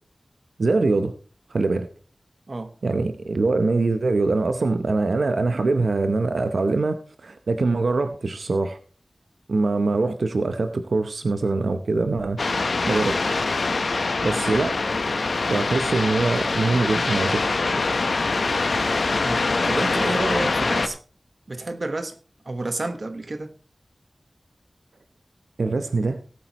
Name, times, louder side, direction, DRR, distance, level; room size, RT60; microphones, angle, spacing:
voice 1, 0.6-1.1 1.5-1.9 2.8-8.8 9.5-12.4 12.8-13.4 14.2-14.8 15.5-17.4 25.6-26.2, right 3 dB, 85° right, 0.8 m, -23 dB
sound 1, 12.4-20.9, left 3 dB, 80° left, 1.0 m, -24 dB
voice 2, 19.2-21.0 21.5-22.2 22.4-23.5, right 2 dB, 55° right, 1.3 m, -30 dB
18.5 x 8.5 x 3.0 m
wide cardioid pair, 70°, 0 cm